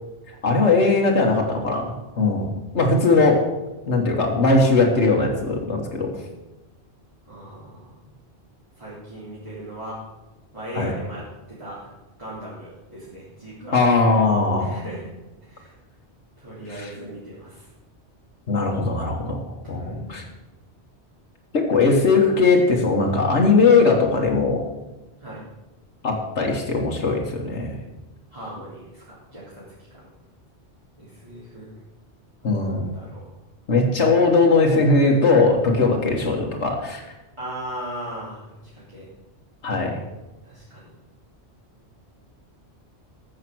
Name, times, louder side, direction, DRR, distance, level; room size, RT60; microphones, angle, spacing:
voice 1, 0.4-3.5 3.9-6.1 10.8-10.9 13.7-14.7 16.7-16.9 18.5-19.4 19.7-20.2 21.5-24.6 26.0-27.8 32.4-32.9 33.7-37.0 39.6-40.0, left 3 dB, 85° left, 0 dB, 1.9 m, -19 dB
voice 2, 7.3-8.1 8.8-10.0 10.5-11.8 12.2-13.8 14.6-15.1 15.4-15.7 16.4-17.7 19.8-20.1 25.2-25.4 28.3-29.6 29.9-30.1 31.0-31.7 32.6-33.2 37.4-38.6 38.9-39.1 40.4-40.9, right 1 dB, 25° right, -9 dB, 3.4 m, -38 dB
13.5 x 7.4 x 6.2 m, 1.0 s
omnidirectional pair, 1.1 m